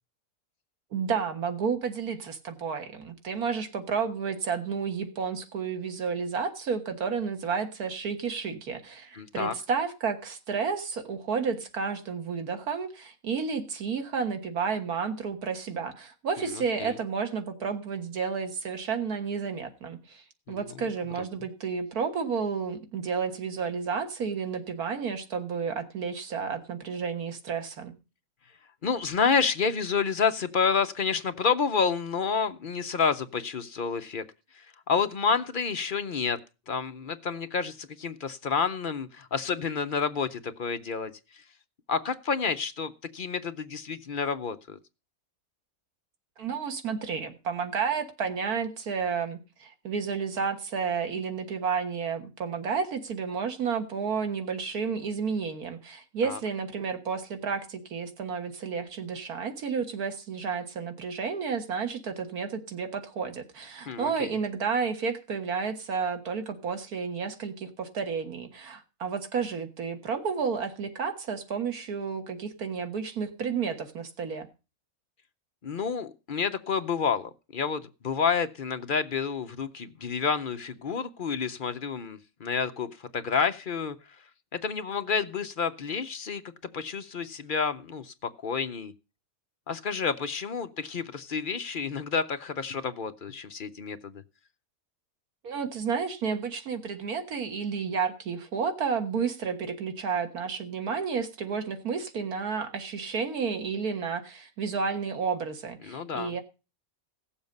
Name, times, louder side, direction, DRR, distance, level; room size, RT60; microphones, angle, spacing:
voice 1, 0.9-20.2 20.5-27.9 46.4-74.5 95.4-106.4, right 6 dB, 85° right, 7 dB, 1.9 m, -31 dB
voice 2, 9.1-9.5 16.4-17.0 20.5-20.9 21.2-21.3 28.8-34.2 34.5-36.4 36.7-41.1 41.9-44.8 56.2-56.4 63.9-64.3 75.6-84.0 84.5-86.4 86.7-88.9 89.7-94.2 105.8-106.3, left 6 dB, 50° left, 9 dB, 0.6 m, -29 dB
16.5 x 7.2 x 5.2 m, 0.31 s
omnidirectional pair, 1.6 m